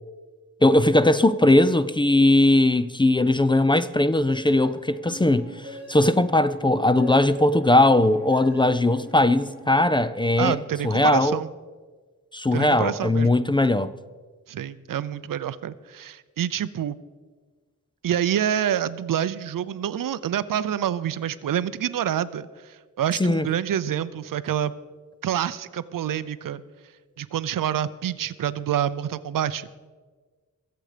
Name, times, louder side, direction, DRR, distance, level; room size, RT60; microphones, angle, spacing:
voice 1, 0.6-5.5 5.9-10.6 10.8-11.4 12.3-13.9 23.2-23.4, left 1 dB, 15° left, 0.4 m, -19 dB
sound 1, 4.3-10.1, right 1 dB, 50° left, 4.5 m, -42 dB
voice 2, 10.4-11.5 12.5-13.3 14.5-17.0 18.0-24.7 25.2-26.6 27.2-29.7, right 10 dB, 85° right, 0.6 m, -27 dB
22.5 x 7.8 x 5.0 m
wide cardioid pair, 150°, 32 cm